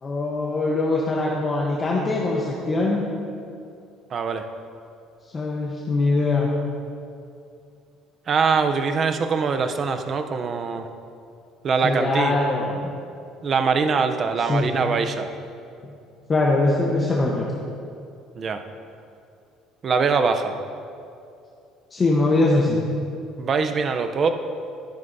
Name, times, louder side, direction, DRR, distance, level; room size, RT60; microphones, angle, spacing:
voice 1, 0.0-3.0 5.3-6.5 11.8-12.7 14.5-14.7 16.3-17.5 21.9-22.8, left 2 dB, 25° left, -3 dB, 1.0 m, -22 dB
voice 2, 4.1-4.5 8.3-10.9 11.6-12.3 13.4-15.3 18.4-18.6 19.8-20.6 23.4-24.3, right 5 dB, 35° right, 7 dB, 0.6 m, -23 dB
13.0 x 11.0 x 2.7 m, 2.5 s
cardioid pair, 140°, 0 cm